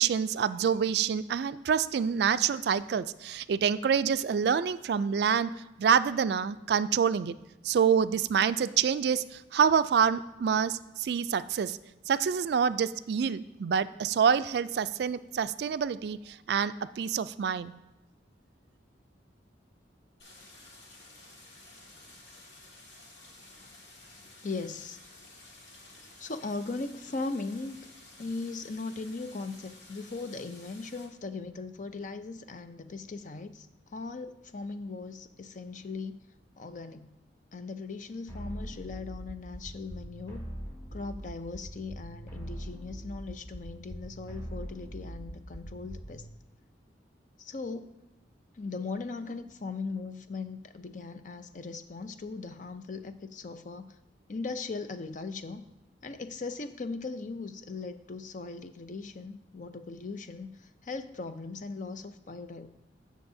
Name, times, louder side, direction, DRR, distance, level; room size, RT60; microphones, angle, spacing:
voice 1, 0.0-5.5 5.8-7.4 7.6-11.8 12.1-17.7, right 7 dB, 60° right, 14 dB, 0.3 m, -27 dB
Stream, 20.2-31.1, left 2 dB, 80° left, 2.0 m, -53 dB
voice 2, 24.2-25.0 26.2-27.8 28.2-36.2 36.6-37.1 37.5-40.5 40.9-46.2 47.4-47.9 48.5-54.0 54.3-55.6 56.0-62.7, left 3 dB, 45° left, 10 dB, 0.5 m, -39 dB
sound 1, 38.3-46.3, right 1 dB, 20° left, 1.4 m, -42 dB
15.5 x 6.4 x 2.7 m, 0.95 s
head